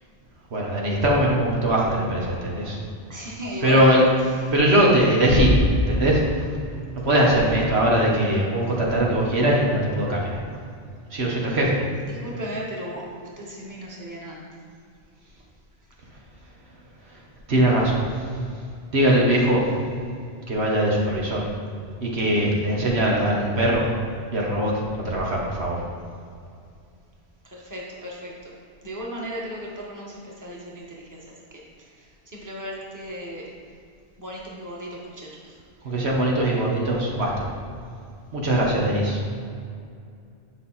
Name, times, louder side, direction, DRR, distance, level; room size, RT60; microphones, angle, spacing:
voice 1, 0.5-2.8 3.6-4.0 4.5-5.6 5.9-6.2 7.0-10.4 11.1-11.8 17.5-18.0 18.9-19.6 20.5-21.4 22.0-23.9 24.3-24.7 25.1-25.8 35.9-37.5 38.3-39.2, right 1 dB, 75° right, -3 dB, 1.6 m, -21 dB
voice 2, 3.1-3.9 4.3-4.5 6.7-6.8 12.0-14.5 27.4-28.5 28.8-33.5 34.2-35.6 35.9-36.0, equal, 15° right, -4 dB, 1.5 m, -36 dB
9.9 x 5.8 x 4.2 m, 2.4 s
omnidirectional pair, 1.1 m